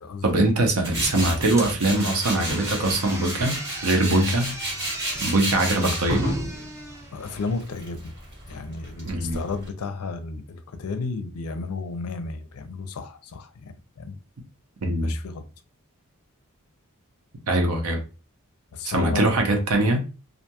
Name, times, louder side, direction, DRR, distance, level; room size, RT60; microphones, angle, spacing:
voice 1, 0.2-4.5 5.2-6.3 9.0-9.4 14.8-15.1 17.5-18.0 18.8-20.0, right 2 dB, 80° right, 0.7 m, -22 dB
Tools, 0.8-9.7, right 1 dB, 55° right, 1.5 m, -31 dB
sound 1, 1.5-7.7, right 1 dB, 15° right, 0.5 m, -38 dB
voice 2, 7.1-8.1 8.5-14.2 14.9-15.4 18.7-19.3, left 4 dB, 75° left, 0.5 m, -33 dB
2.5 x 2.2 x 2.8 m
head